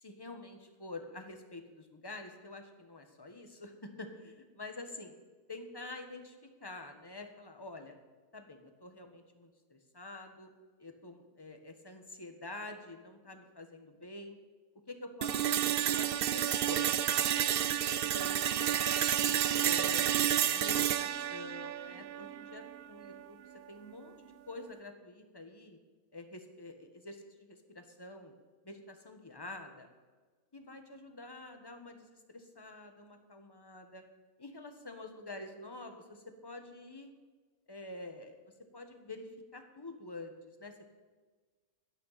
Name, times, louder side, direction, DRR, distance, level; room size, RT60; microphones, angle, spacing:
voice 1, 0.0-5.1 5.5-8.0 8.3-10.5 10.8-14.4 14.9-17.3 17.8-20.1 20.5-25.8 26.1-27.2 27.5-28.3 28.6-29.9 30.5-34.0 34.4-37.1 37.7-38.4 38.7-40.9, left 2 dB, 15° left, 5 dB, 1.4 m, -48 dB
sound 1, 15.2-23.2, right 10 dB, 70° right, 0.5 m, -30 dB
17.5 x 12.0 x 4.2 m, 1.4 s
omnidirectional pair, 1.6 m